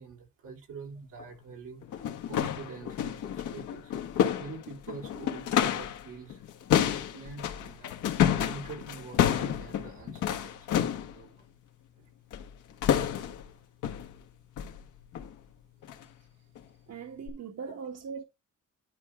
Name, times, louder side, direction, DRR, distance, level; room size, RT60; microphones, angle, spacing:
voice 1, 0.0-3.9 4.4-11.5 12.0-12.1, right 5 dB, 85° right, 3.7 m, -46 dB
sound 1, 1.2-1.3 1.8-6.0 6.3-11.1 12.3-12.5 12.8-13.5 13.8-14.1 14.6-14.8 15.1-15.3 15.8-16.0 16.6-16.7 17.3-17.4, left 9 dB, 80° left, 1.4 m, -29 dB
voice 2, 16.9-18.2, right 6 dB, 60° right, 1.5 m, -40 dB
11.0 x 4.6 x 3.7 m
cardioid pair, 90°, 30 cm